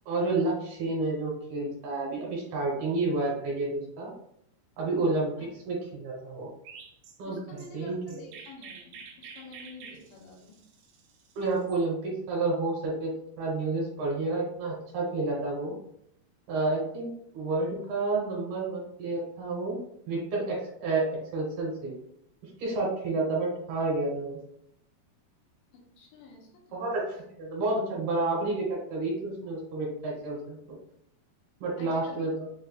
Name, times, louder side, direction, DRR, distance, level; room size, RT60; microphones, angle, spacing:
voice 1, 0.1-4.1 4.8-5.3 5.7-6.5 7.2-8.0 11.4-13.1 13.4-15.7 16.5-19.8 20.1-21.1 21.3-21.9 22.6-24.4 26.7-30.8 31.6-32.5, right 2 dB, 70° right, -3 dB, 2.7 m, -30 dB
Chirp tweet, 6.6-11.8, right 6 dB, 85° right, 2.0 m, -48 dB
voice 2, 7.2-10.6 25.7-26.8 31.8-32.3, left 3 dB, 85° left, -2 dB, 3.1 m, -49 dB
7.1 x 2.5 x 2.3 m, 0.74 s
omnidirectional pair, 4.9 m